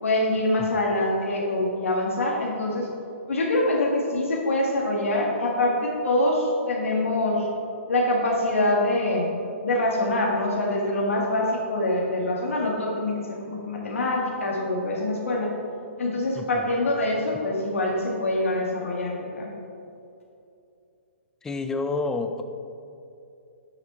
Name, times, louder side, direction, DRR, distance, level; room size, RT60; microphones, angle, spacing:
voice 1, 0.0-2.9 3.3-7.5 7.9-9.3 9.6-15.5 16.0-19.5, left 1 dB, 75° left, -1 dB, 1.7 m, -25 dB
voice 2, 16.4-16.7 21.4-22.4, left 3 dB, 5° left, 7 dB, 0.3 m, -29 dB
6.7 x 6.0 x 4.2 m, 2.6 s
hypercardioid pair, 135°, 7 cm